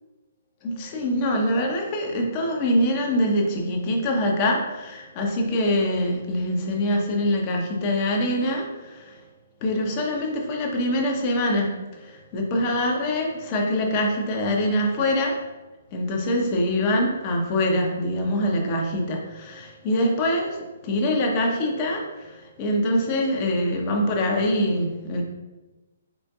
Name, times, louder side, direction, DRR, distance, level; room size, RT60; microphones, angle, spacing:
voice 1, 0.6-8.6 9.6-11.7 12.3-15.4 15.9-20.6 20.8-22.0 22.6-25.2, left 1 dB, 35° left, 0 dB, 0.9 m, -24 dB
4.3 x 4.0 x 2.4 m, 1.1 s
figure-of-eight pair, 125°, 0 cm